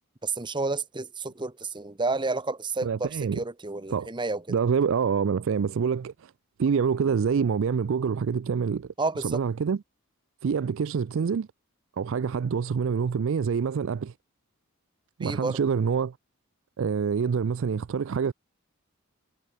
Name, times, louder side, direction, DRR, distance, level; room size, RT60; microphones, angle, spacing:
voice 1, 0.2-4.4 9.0-9.4 15.2-15.6, right 3 dB, 20° right, 1.0 m, -30 dB
voice 2, 2.8-3.4 3.9-4.1 4.5-6.3 6.6-8.9 9.2-9.8 10.4-11.5 12.0-14.1 15.2-16.2 16.8-18.3, right 6 dB, 60° right, 0.4 m, -26 dB
head